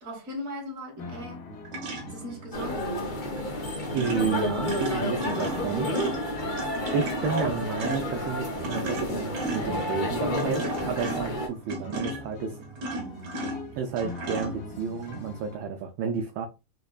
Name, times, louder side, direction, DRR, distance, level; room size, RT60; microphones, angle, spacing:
voice 1, 0.0-1.4 2.1-2.9, left 1 dB, 40° right, 1.8 m, -38 dB
sound 1, 1.0-15.6, equal, 65° left, 1.8 m, -43 dB
sound 2, 1.7-2.4 3.4-3.6 3.8-15.2, right 1 dB, 55° right, 1.5 m, -36 dB
sound 3, 2.5-11.5, left 1 dB, 45° left, 0.6 m, -30 dB
voice 2, 3.9-6.2 6.9-12.6 13.7-16.5, right 6 dB, 75° right, 1.2 m, -31 dB
4.3 x 2.9 x 2.3 m
omnidirectional pair, 2.4 m